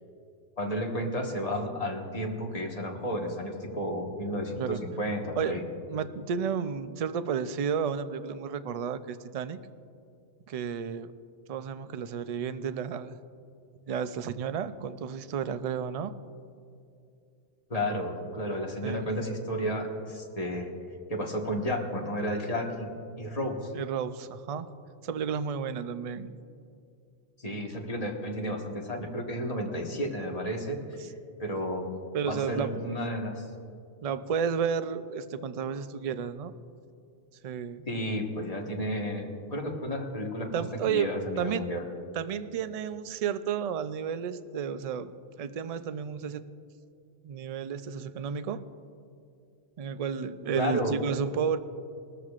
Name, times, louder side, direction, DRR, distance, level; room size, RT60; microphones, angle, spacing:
voice 1, 0.6-5.6 17.7-20.7 21.1-22.9 23.2-23.7 27.4-30.8 31.4-31.9 32.3-33.4 37.9-41.8 50.5-51.0, equal, 35° left, 0 dB, 1.5 m, -32 dB
voice 2, 5.9-9.6 10.5-11.1 11.5-13.2 13.8-16.1 18.8-19.1 23.7-24.7 25.0-26.3 31.0-31.1 32.1-32.7 34.0-36.5 37.4-37.9 40.5-41.7 42.2-45.1 45.4-46.4 47.2-48.6 49.8-51.6, right 7 dB, 55° right, 11 dB, 0.4 m, -32 dB
20.0 x 13.5 x 2.5 m, 2.5 s
omnidirectional pair, 1.2 m